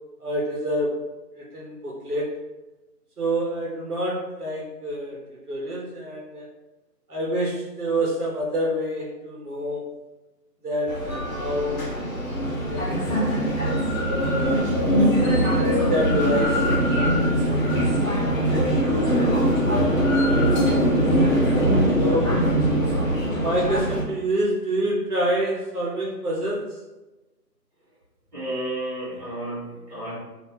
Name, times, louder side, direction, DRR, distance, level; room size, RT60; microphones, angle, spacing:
voice 1, 0.2-1.1 1.4-2.3 3.2-6.5 7.1-9.8 10.6-12.0 12.7-13.1 14.0-14.8 15.3-17.5 18.4-21.4 21.9-22.5 23.2-26.8, equal, 65° right, -4 dB, 1.1 m, -28 dB
sound 1, 10.9-24.0, equal, 55° left, 1.0 m, -22 dB
voice 2, 28.3-30.2, right 1 dB, 25° right, -12 dB, 1.5 m, -32 dB
3.6 x 2.7 x 4.1 m, 1.1 s
figure-of-eight pair, 175°, 49 cm